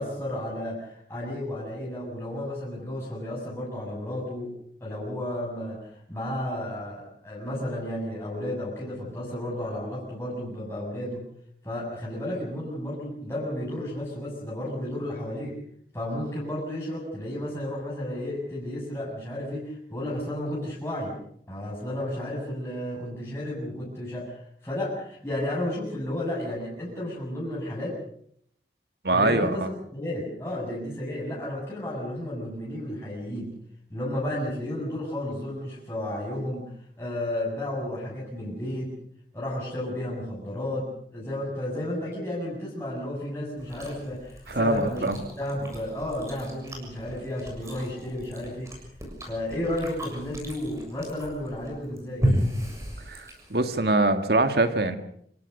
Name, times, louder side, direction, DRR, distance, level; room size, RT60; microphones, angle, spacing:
voice 1, 0.0-11.3 11.6-15.6 15.9-21.2 21.5-28.0 29.1-33.5 33.9-39.0 39.3-48.7 49.2-52.3, left 1 dB, 15° left, -5 dB, 7.0 m, -32 dB
voice 2, 29.0-29.7 44.5-45.2 53.1-55.0, right 2 dB, 65° right, 8 dB, 1.9 m, -23 dB
Chewing mastication, 43.6-53.7, equal, 15° right, 7.2 m, -34 dB
27.0 x 17.5 x 6.7 m, 0.67 s
head